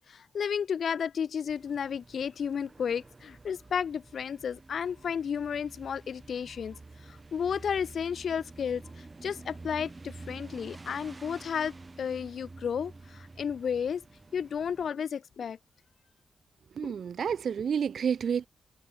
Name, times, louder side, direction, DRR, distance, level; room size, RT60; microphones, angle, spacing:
voice 1, 0.0-6.8 7.1-14.0 14.3-15.6, left 7 dB, 75° left, 4.8 m, -33 dB
sound 1, 1.5-14.9, right 3 dB, 30° right, 6.6 m, -49 dB
voice 2, 16.8-18.5, right 7 dB, 75° right, 1.8 m, -29 dB
wide cardioid pair, 105°, 0 cm